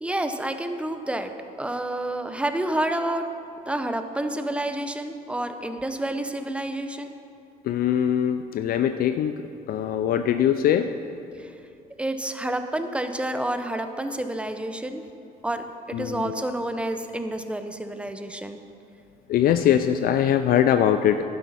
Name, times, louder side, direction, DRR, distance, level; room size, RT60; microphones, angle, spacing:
voice 1, 0.0-1.3 1.6-3.2 3.7-7.1 12.0-15.0 15.4-18.6, right 1 dB, 5° right, 8 dB, 0.7 m, -29 dB
voice 2, 7.6-9.3 9.7-10.9 15.9-16.4 19.3-21.2, left 10 dB, 60° left, 8 dB, 0.4 m, -22 dB
11.5 x 10.5 x 4.2 m, 2.7 s
cardioid pair, 110°, 17 cm